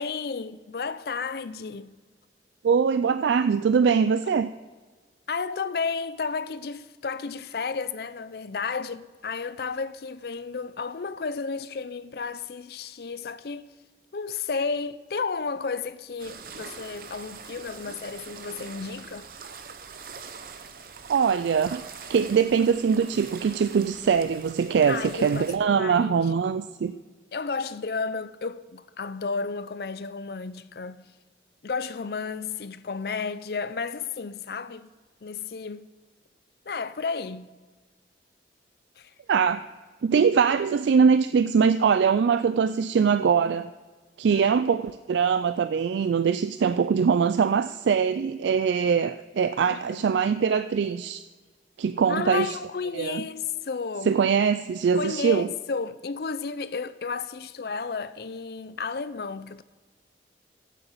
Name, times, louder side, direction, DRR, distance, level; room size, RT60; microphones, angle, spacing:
voice 1, 0.0-1.9 5.3-13.7 14.1-19.3 24.9-26.3 27.3-31.1 31.6-34.9 35.2-35.9 36.7-37.6 39.0-39.1 44.3-44.4 49.6-50.1 52.1-54.2 54.9-59.6, left 5 dB, 60° left, 0.5 m, -32 dB
voice 2, 2.6-4.5 21.1-21.8 22.1-26.9 39.3-39.6 40.0-43.7 44.2-51.3 51.8-52.6 52.9-53.2 54.1-55.5, right 6 dB, 80° right, 0.3 m, -22 dB
sound 1, 16.2-25.6, right 5 dB, 50° right, 0.7 m, -43 dB
8.3 x 7.9 x 7.2 m
head